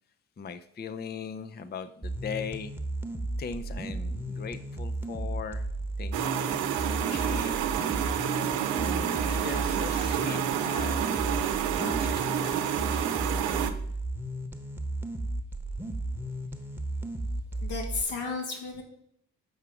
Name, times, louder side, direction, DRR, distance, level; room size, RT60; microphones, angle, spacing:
voice 1, 0.4-2.7 3.4-5.7 6.0-7.6 8.4-11.3 11.7-12.7, left 5 dB, 20° left, 11 dB, 0.6 m, -40 dB
sound 1, 2.0-18.0, right 1 dB, 5° right, 1.1 m, -34 dB
sound 2, 6.1-13.7, right 10 dB, 75° right, 0.8 m, -29 dB
voice 2, 17.6-18.8, left 4 dB, 75° left, 1 dB, 1.9 m, -33 dB
7.2 x 5.7 x 4.8 m, 0.69 s
hypercardioid pair, 45°, 46 cm